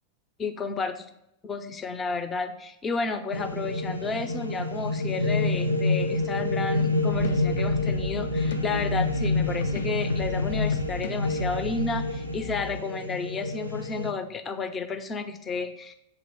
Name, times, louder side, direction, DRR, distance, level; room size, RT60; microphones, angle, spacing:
voice 1, 0.4-1.1 1.4-15.9, left 4 dB, 20° left, 7 dB, 0.6 m, -32 dB
sound 1, 3.3-14.1, left 2 dB, 90° right, 0.4 m, -28 dB
sound 2, 7.1-12.8, left 5 dB, 65° left, 0.5 m, -37 dB
7.6 x 2.8 x 5.5 m, 0.81 s
figure-of-eight pair, 90°, 0 cm